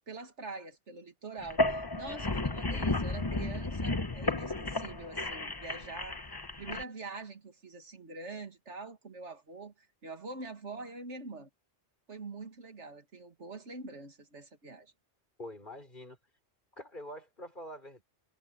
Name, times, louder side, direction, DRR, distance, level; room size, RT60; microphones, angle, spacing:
voice 1, 0.1-6.2 6.6-11.5 12.1-14.9, right 3 dB, 85° right, 2.4 m, -44 dB
sound 1, 1.4-6.8, left 2 dB, 20° left, 1.0 m, -33 dB
voice 2, 2.7-3.1 15.4-16.2 16.7-18.0, left 1 dB, 45° left, 5.2 m, -45 dB
omnidirectional pair, 1.2 m